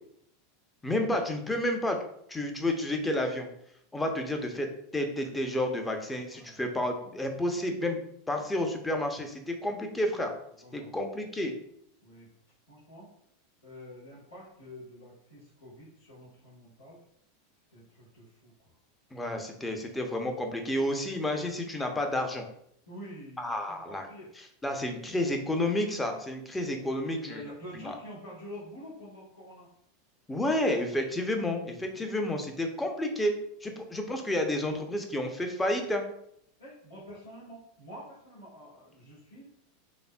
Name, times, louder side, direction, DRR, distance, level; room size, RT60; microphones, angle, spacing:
voice 1, 0.8-2.0 2.3-3.5 3.9-10.3 10.7-11.5 19.1-22.5 23.4-24.1 24.6-27.4 27.7-27.9 30.3-33.4 33.6-36.0, left 1 dB, 10° left, 4 dB, 0.7 m, -30 dB
voice 2, 6.3-6.7 10.6-11.1 12.0-12.3 12.7-13.1 13.6-17.0 17.7-18.7 22.9-24.3 27.0-29.7 31.9-32.0 33.7-33.8 36.6-39.5, equal, 85° left, -9 dB, 1.5 m, -47 dB
4.1 x 3.4 x 2.3 m, 0.72 s
hypercardioid pair, 90°, 0 cm